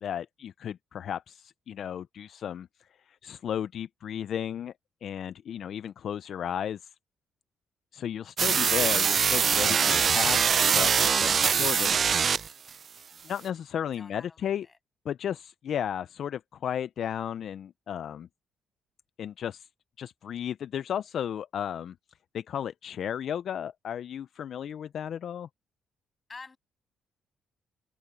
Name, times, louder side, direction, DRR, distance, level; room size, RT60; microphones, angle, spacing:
voice 1, 0.0-2.7 3.2-4.7 5.0-6.8 7.9-10.5 10.7-12.4 13.2-14.7 15.1-18.3 19.2-19.7 20.0-21.9 22.3-25.5, left 9 dB, 65° left, 0.4 m, -34 dB
sound 1, 8.4-12.7, right 6 dB, 50° right, 0.4 m, -23 dB
voice 2, 14.0-14.8 26.3-26.6, left 4 dB, 30° left, 7.7 m, -47 dB
open air
cardioid pair, 90°, 0 cm